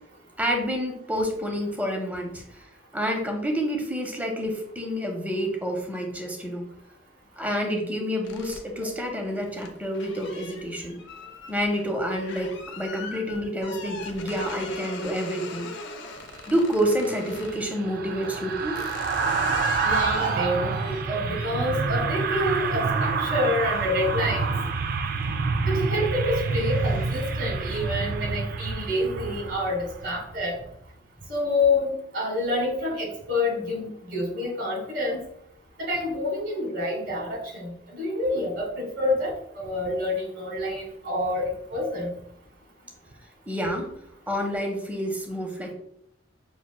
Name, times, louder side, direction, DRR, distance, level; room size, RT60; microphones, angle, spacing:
voice 1, 0.4-2.4 2.9-6.6 7.4-11.0 11.5-12.5 12.8-15.7 16.5-18.8 43.5-43.9 44.3-45.7, equal, 10° right, 2 dB, 0.7 m, -28 dB
sound 1, 8.2-17.6 18.2-24.7 25.1-25.5 25.8-27.6, left 4 dB, 75° left, 0.6 m, -42 dB
sound 2, 16.7-30.1 30.4-30.6, right 4 dB, 55° right, 0.3 m, -28 dB
voice 2, 19.8-24.5 25.6-30.6 31.3-35.2 35.8-42.1, left 1 dB, 80° right, -2 dB, 1.6 m, -27 dB
6.0 x 2.8 x 2.2 m, 0.74 s
head